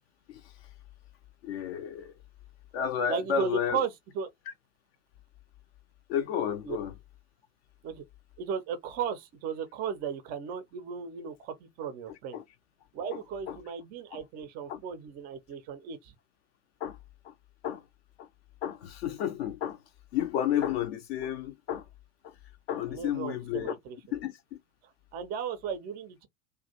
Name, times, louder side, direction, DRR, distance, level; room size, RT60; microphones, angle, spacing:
voice 1, 1.4-2.1 2.7-3.9 6.1-6.9 12.3-12.4 13.1-13.2 13.5-13.6 14.1-14.2 14.7-14.8 16.8-17.0 17.2-17.3 17.6-17.8 18.2-18.3 18.6-19.8 20.1-21.8 22.2-22.3 22.7-23.8 24.1-24.6, left 9 dB, 45° left, 0.4 m, -32 dB
voice 2, 3.1-4.3 6.7-6.8 7.8-8.0 8.4-12.4 12.9-16.1 22.8-24.0 25.1-26.3, right 7 dB, 25° right, 0.4 m, -35 dB
2.3 x 2.1 x 2.7 m
figure-of-eight pair, 85°, 44 cm